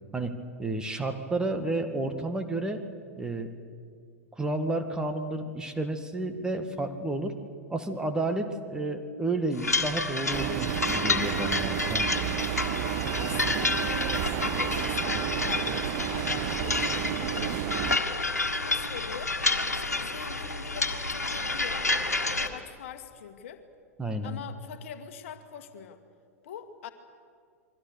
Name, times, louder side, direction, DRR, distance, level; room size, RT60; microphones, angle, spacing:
voice 1, 0.1-2.8 3.2-3.5 4.4-7.4 7.7-12.1 24.0-24.4, right 2 dB, 10° right, 6 dB, 1.9 m, -31 dB
sound 1, 9.6-22.5, left 3 dB, 85° left, 1.8 m, -29 dB
sound 2, 10.3-18.0, right 14 dB, 40° right, 0.7 m, -31 dB
voice 2, 13.2-18.0 18.5-19.4 19.7-21.9 22.2-23.6 24.2-26.0 26.4-26.9, left 8 dB, 55° left, 8 dB, 1.9 m, -43 dB
28.5 x 23.0 x 6.8 m, 2.2 s
figure-of-eight pair, 95°, 8 cm